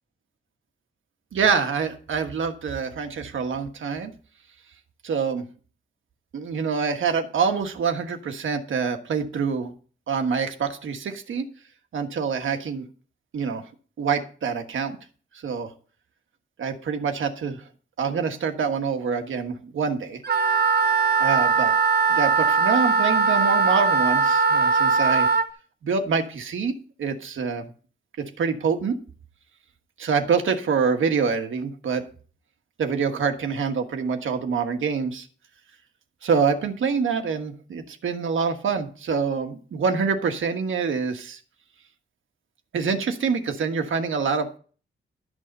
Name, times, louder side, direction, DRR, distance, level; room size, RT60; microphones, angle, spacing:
voice 1, 1.3-4.1 5.0-5.4 6.3-9.7 10.1-11.5 11.9-12.8 13.3-13.6 14.0-15.0 15.4-15.7 16.6-17.6 18.0-20.2 21.2-21.7 22.1-25.3 25.8-27.7 28.2-29.0 30.0-32.0 32.8-35.3 36.2-41.4 42.7-44.6, right 5 dB, 85° right, 5 dB, 1.4 m, -26 dB
Wind instrument woodwind instrument, 20.2-25.5, right 5 dB, 55° right, 1.0 m, -20 dB
12.0 x 6.4 x 5.4 m, 0.41 s
wide cardioid pair, 165°, 20 cm